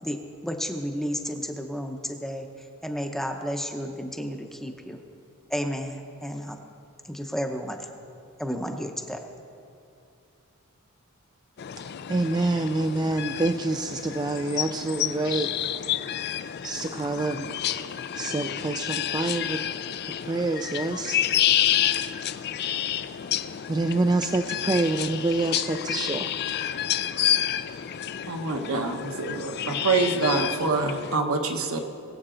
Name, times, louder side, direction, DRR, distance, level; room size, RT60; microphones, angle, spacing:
voice 1, 0.0-5.0 5.5-6.6 7.1-7.9 8.4-9.2, equal, ahead, 4 dB, 0.7 m, -32 dB
sound 1, 11.6-31.2, left 11 dB, 50° left, 0.4 m, -29 dB
voice 2, 12.1-15.5 16.6-17.5 18.1-19.6 20.2-21.2 23.7-26.3, right 2 dB, 20° right, 6 dB, 0.4 m, -26 dB
voice 3, 28.3-31.8, right 3 dB, 70° right, 4 dB, 1.1 m, -26 dB
21.0 x 7.9 x 3.8 m, 2.6 s
head